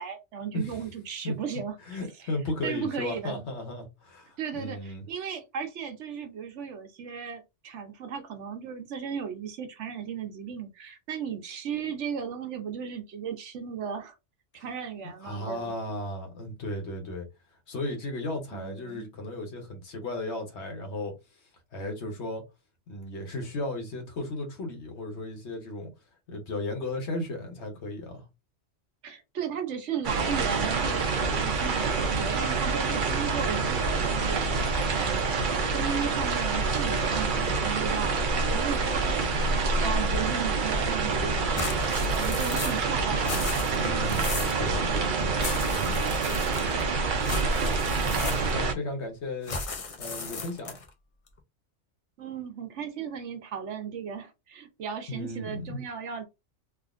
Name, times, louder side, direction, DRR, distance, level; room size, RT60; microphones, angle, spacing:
voice 1, 0.0-2.0 2.6-3.4 4.4-14.2 14.5-15.7 18.5-19.1 29.0-34.5 35.0-39.5 39.8-43.5 45.0-45.6 46.4-46.9 52.2-56.2, right 7 dB, 75° right, 1.1 m, -36 dB
voice 2, 0.5-0.8 1.2-1.3 1.9-5.0 14.5-14.7 15.2-17.3 17.7-21.1 21.7-22.4 22.9-25.9 26.3-28.2 43.7-45.4 45.7-46.0 48.0-49.6 50.0-50.7 55.1-55.8, left 2 dB, 65° left, 1.3 m, -35 dB
sound 1, 30.0-48.7, right 4 dB, 55° right, 0.7 m, -27 dB
sound 2, 41.6-42.9 43.2-44.6 45.4-46.8 47.2-48.7 49.4-50.9, left 4 dB, 45° left, 0.5 m, -36 dB
3.5 x 2.4 x 2.4 m
omnidirectional pair, 1.2 m